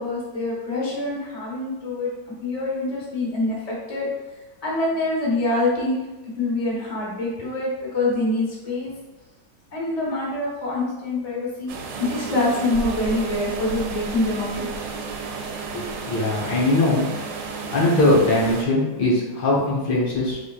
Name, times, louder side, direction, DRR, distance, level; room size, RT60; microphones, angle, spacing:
voice 1, 0.0-2.1 2.4-4.1 4.6-6.0 6.4-8.9 9.7-14.7, left 2 dB, 25° left, -4 dB, 1.0 m, -25 dB
sound 1, 11.7-18.6, right 5 dB, 80° right, 1.3 m, -32 dB
voice 2, 15.7-17.1 17.7-20.4, left 2 dB, 85° left, -5 dB, 2.0 m, -20 dB
4.7 x 4.3 x 2.4 m, 1.1 s
omnidirectional pair, 1.9 m